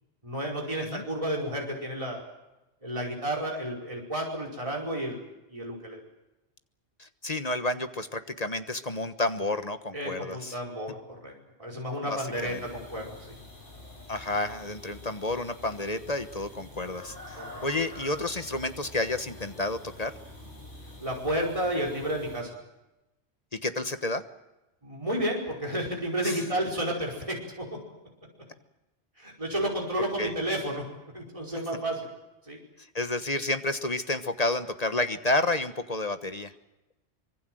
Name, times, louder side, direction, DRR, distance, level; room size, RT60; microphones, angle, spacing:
voice 1, 0.2-2.2 2.8-5.2 5.5-6.0 9.9-11.0 11.2-11.3 11.6-13.4 17.4-17.6 21.0-22.5 24.8-27.7 29.2-30.8 31.1-32.1 32.4-32.6, right 1 dB, 30° right, -1 dB, 5.2 m, -31 dB
voice 2, 7.0-10.5 12.4-12.6 14.1-20.1 23.5-24.2 26.2-26.4 30.2-30.3 32.9-36.5, left 2 dB, 35° left, 10 dB, 1.3 m, -30 dB
sound 1, 12.3-22.4, left 1 dB, 80° left, 7.8 m, -47 dB
25.0 x 23.0 x 7.8 m, 0.97 s
omnidirectional pair, 1.2 m